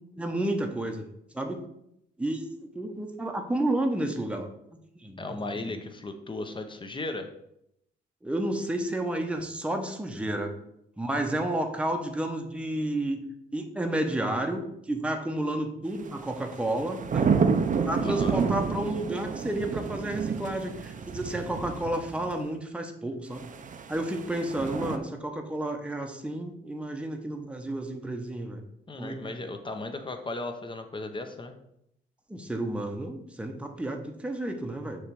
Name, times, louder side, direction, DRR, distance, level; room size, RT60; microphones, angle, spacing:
voice 1, 0.2-1.1 1.3-1.6 2.2-2.5 2.7-4.5 5.0-5.2 5.5-5.7 8.2-10.5 11.0-13.2 13.5-17.3 17.8-23.5 23.9-28.6 29.0-29.4 32.3-35.0, right 1 dB, 5° right, 4 dB, 0.8 m, -31 dB
voice 2, 5.2-7.3 18.0-18.4 28.9-31.5, left 2 dB, 25° left, 6 dB, 0.8 m, -36 dB
sound 1, 16.1-22.3 23.4-25.0, right 5 dB, 40° right, 0.6 m, -29 dB
6.5 x 3.2 x 4.7 m, 0.78 s
cardioid pair, 90°, 20 cm